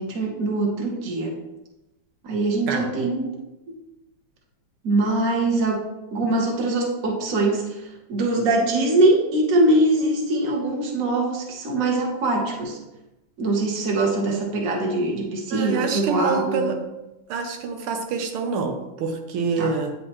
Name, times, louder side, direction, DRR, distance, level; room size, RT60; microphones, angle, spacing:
voice 1, 0.0-1.3 2.2-3.4 4.8-12.8 13.4-16.7 19.6-19.7, right 2 dB, 45° right, 0 dB, 1.3 m, -23 dB
voice 2, 15.5-16.8 17.3-19.9, right 5 dB, 90° right, 4 dB, 1.7 m, -26 dB
9.1 x 4.3 x 3.0 m, 0.98 s
omnidirectional pair, 2.3 m